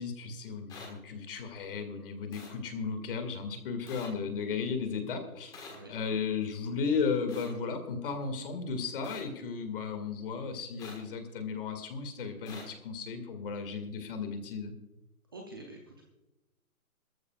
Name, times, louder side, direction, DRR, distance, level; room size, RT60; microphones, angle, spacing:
voice 1, 0.0-5.5 5.9-14.7, left 5 dB, 35° left, 7 dB, 2.1 m, -35 dB
sound 1, 0.7-0.9 2.3-2.5 3.9-4.1 5.5-5.8 7.3-7.5 9.0-9.2 10.8-11.0 12.5-12.6, left 4 dB, 10° left, 1.5 m, -46 dB
voice 2, 15.3-16.1, right 2 dB, 15° right, 0 dB, 0.6 m, -47 dB
22.0 x 14.0 x 2.4 m, 0.98 s
hypercardioid pair, 160°, 44 cm